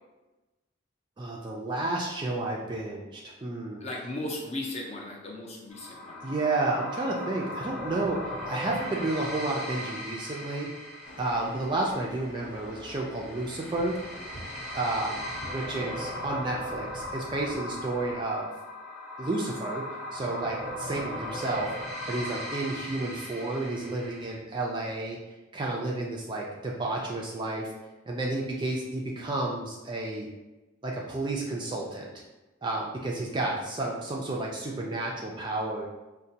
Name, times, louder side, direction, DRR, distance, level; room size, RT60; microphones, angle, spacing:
voice 1, 1.2-3.8 6.2-10.7 11.2-14.0 14.7-18.5 19.2-19.8 20.1-21.7 22.1-25.2 25.5-27.7 28.1-30.3 30.8-32.1 32.6-35.9, right 2 dB, 25° right, -2 dB, 0.3 m, -31 dB
voice 2, 3.8-6.2, left 1 dB, 30° left, -2 dB, 0.6 m, -36 dB
sound 1, 5.7-24.4, equal, ahead, 0.9 m, -38 dB
sound 2, 11.0-17.6, left 1 dB, 85° left, 0.7 m, -48 dB
sound 3, 13.1-18.2, right 1 dB, 65° left, 1.0 m, -51 dB
4.9 x 2.1 x 2.7 m, 1.1 s
head